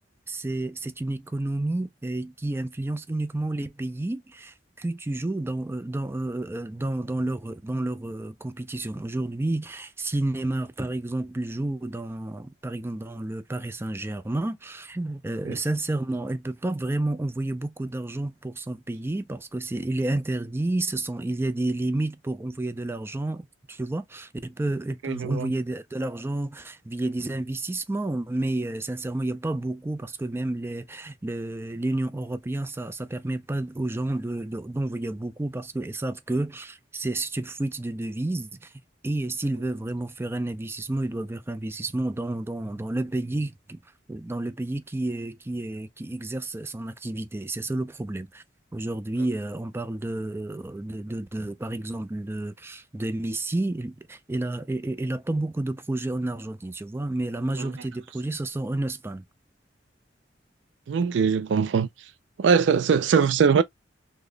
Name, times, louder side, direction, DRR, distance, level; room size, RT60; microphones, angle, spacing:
voice 1, 0.3-38.7 39.0-43.8 44.1-48.4 48.7-59.2, right 2 dB, 15° right, 0.4 m, -30 dB
voice 2, 25.0-25.5 57.6-57.7 60.9-61.9 62.4-63.6, right 6 dB, 85° right, 0.4 m, -21 dB
3.8 x 2.1 x 3.1 m
head